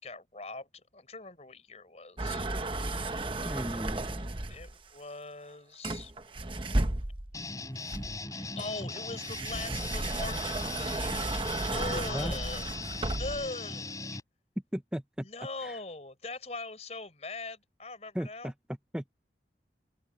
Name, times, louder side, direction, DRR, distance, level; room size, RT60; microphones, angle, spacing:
voice 1, 0.0-2.4 3.5-6.1 8.3-14.2 15.2-18.5, left 3 dB, 40° left, 4.3 m, -42 dB
sound 1, 2.2-4.7 5.8-7.4 7.9-13.5, right 2 dB, 30° right, 1.0 m, -34 dB
voice 2, 3.4-4.2 11.9-12.4 14.7-15.3 15.6-15.8 18.1-18.5 18.9-19.1, equal, 5° right, 0.6 m, -36 dB
sound 2, 7.3-14.2, left 3 dB, 20° left, 4.2 m, -39 dB
open air
head